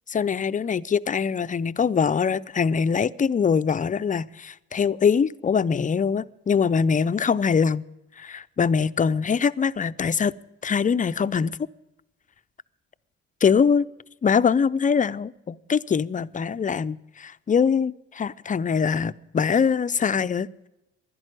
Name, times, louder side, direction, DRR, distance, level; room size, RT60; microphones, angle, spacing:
voice 1, 0.1-7.8 8.2-10.3 10.6-11.5 13.4-13.9 14.2-20.7, left 6 dB, 25° left, 16 dB, 0.5 m, -23 dB
11.5 x 10.5 x 9.7 m, 0.97 s
cardioid pair, 90°, 30 cm